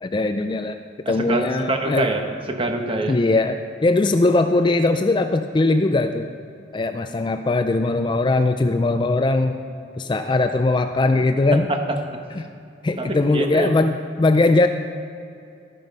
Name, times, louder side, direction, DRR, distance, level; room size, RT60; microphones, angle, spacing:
voice 1, 0.0-0.8 1.1-2.1 3.1-6.3 6.7-9.6 10.0-11.7 12.4-12.5 12.8-14.7, left 2 dB, 25° left, 8 dB, 0.4 m, -20 dB
voice 2, 1.0-2.2 2.5-3.2 11.5-12.2 13.0-13.7, right 2 dB, 30° right, 4 dB, 1.2 m, -25 dB
12.5 x 9.2 x 5.4 m, 2.5 s
head